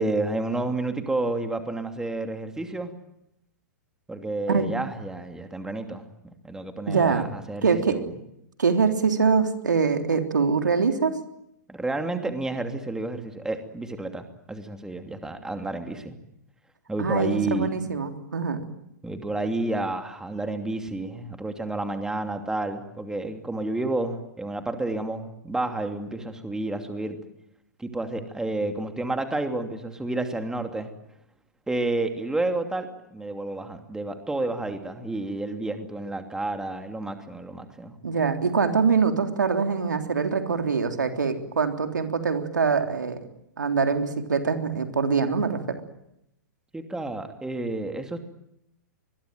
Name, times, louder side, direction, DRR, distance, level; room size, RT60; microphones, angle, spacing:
voice 1, 0.0-2.9 4.1-8.1 11.7-16.2 16.9-17.7 19.0-27.2 27.8-30.9 31.7-37.9 46.7-48.2, right 2 dB, 5° right, 6 dB, 2.8 m, -30 dB
voice 2, 6.9-7.3 7.6-8.0 8.6-11.2 17.0-18.6 38.0-43.2 43.6-45.8, right 5 dB, 85° right, 6 dB, 3.4 m, -24 dB
25.0 x 21.5 x 9.3 m, 0.80 s
hypercardioid pair, 120°, 10 cm